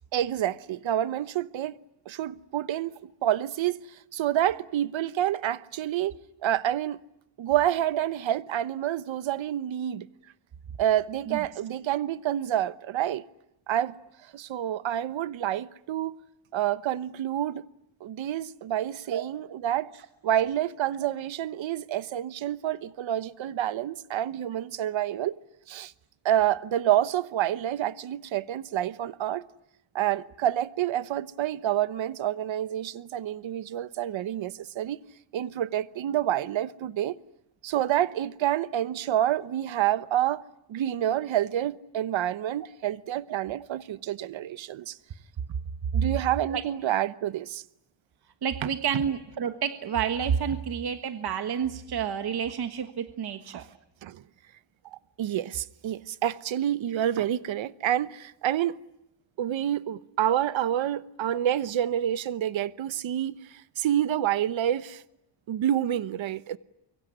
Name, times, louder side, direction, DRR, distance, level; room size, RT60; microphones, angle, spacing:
voice 1, 0.1-1.8 2.1-2.9 3.2-3.8 4.1-6.1 6.4-7.0 7.4-10.1 10.8-13.2 13.7-13.9 14.3-16.1 16.5-17.7 18.0-19.9 20.2-25.4 25.7-25.9 26.2-29.4 29.9-35.0 35.3-37.1 37.6-40.4 40.7-45.0 45.9-47.6 48.6-48.7 53.5-53.6 54.0-54.2 54.9-58.8 59.4-65.0 65.5-66.6, right 11 dB, 75° right, 1.1 m, -28 dB
voice 2, 48.4-53.6, right 7 dB, 55° right, 1.5 m, -29 dB
24.5 x 23.5 x 9.9 m
wide cardioid pair, 145°, 46 cm